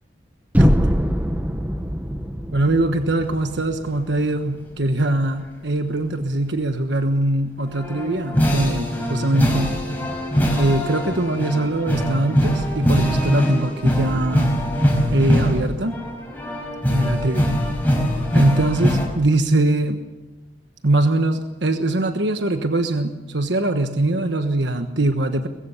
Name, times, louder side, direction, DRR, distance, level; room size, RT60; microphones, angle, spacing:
sound 1, 0.5-4.5, equal, 10° right, 1.0 m, -22 dB
voice 1, 0.6-0.9 2.5-9.8 10.6-14.5 15.1-16.0 16.9-17.6 18.3-20.0 20.8-25.5, right 2 dB, 75° right, 7 dB, 1.3 m, -22 dB
sound 2, 7.7-19.1, equal, 10° left, 4.7 m, -22 dB
21.5 x 15.5 x 8.4 m, 1.1 s
head